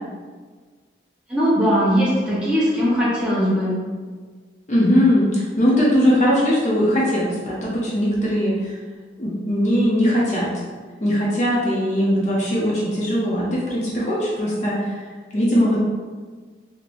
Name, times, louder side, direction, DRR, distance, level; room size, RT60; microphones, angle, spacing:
voice 1, 1.3-3.8, equal, 5° right, -9 dB, 0.8 m, -19 dB
voice 2, 4.7-8.7 9.2-10.5 11.0-15.0 15.3-15.8, equal, 40° left, -6 dB, 0.6 m, -20 dB
3.3 x 2.7 x 2.5 m, 1.5 s
head